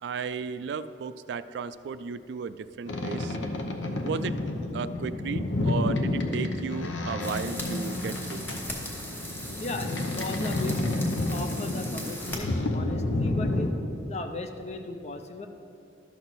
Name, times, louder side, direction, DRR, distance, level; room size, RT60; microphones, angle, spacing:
voice 1, 0.0-3.4 4.0-4.4 4.7-8.4, right 5 dB, 70° right, 14 dB, 0.3 m, -34 dB
Boat Water vehicle, 2.9-13.7, left 2 dB, 85° left, 0.8 m, -30 dB
sound 1, 7.2-12.4, equal, 10° left, 0.9 m, -39 dB
voice 2, 9.6-10.8 11.3-13.7 14.0-15.5, left 2 dB, 35° left, 6 dB, 0.5 m, -36 dB
12.0 x 6.2 x 4.1 m, 2.6 s
head